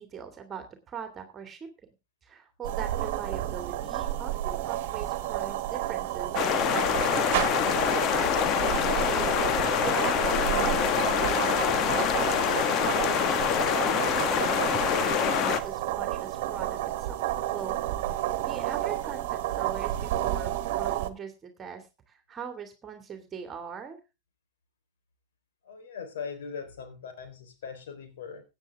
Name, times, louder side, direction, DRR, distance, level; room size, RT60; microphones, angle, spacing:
voice 1, 0.0-1.7 2.2-7.5 7.9-17.2 17.5-17.8 18.2-24.0, right 7 dB, 25° right, 6 dB, 2.4 m, -41 dB
sound 1, 2.6-21.1, right 13 dB, 60° right, 1.4 m, -31 dB
sound 2, 6.3-15.6, left 9 dB, 40° left, 1.5 m, -25 dB
voice 2, 25.6-28.4, left 6 dB, 75° left, 7 dB, 4.0 m, -40 dB
17.0 x 9.0 x 3.6 m, 0.28 s
hypercardioid pair, 100°, 0 cm